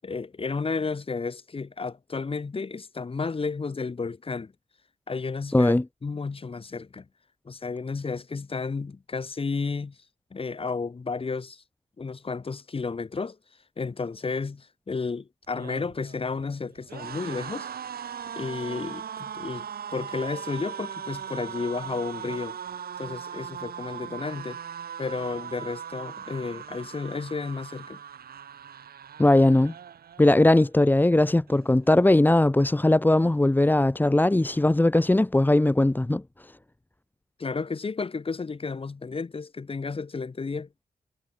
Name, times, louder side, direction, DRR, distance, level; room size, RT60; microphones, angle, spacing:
voice 1, 0.0-4.5 5.1-7.1 7.4-9.9 10.3-11.6 12.0-13.4 13.8-17.7 18.3-22.6 23.0-24.6 25.0-28.0 37.4-40.7, left 4 dB, 35° left, 7.9 m, -32 dB
voice 2, 5.5-5.8 29.2-29.7 30.2-36.2, left 1 dB, 10° left, 1.4 m, -19 dB
sound 1, 15.4-30.6 31.0-31.2 31.5-32.3, right 8 dB, 80° right, 5.8 m, -39 dB
wide cardioid pair, 125°, 16 cm